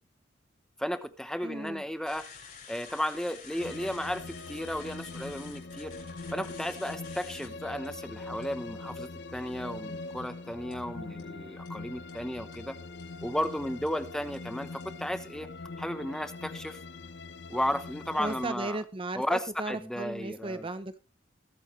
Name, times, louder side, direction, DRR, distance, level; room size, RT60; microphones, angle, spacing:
voice 1, 0.8-2.3 2.7-5.9 6.3-12.8 13.2-14.7 15.0-15.5 15.8-16.8 17.5-18.8 19.1-20.7, equal, 5° left, 0.9 m, -34 dB
voice 2, 1.4-1.8 18.2-21.0, right 2 dB, 30° right, 0.7 m, -36 dB
sound 1, 2.1-7.5 7.8-7.9 8.4-8.6 10.7-10.8 11.2-11.3 11.7-11.8 12.1-12.2 12.5-12.6 13.0-13.1 13.4-13.5 13.9-14.0 14.3-14.4 14.8-14.9, left 6 dB, 50° left, 7.0 m, -49 dB
sound 2, 3.6-18.5, left 3 dB, 65° left, 0.8 m, -42 dB
21.0 x 8.6 x 3.2 m
head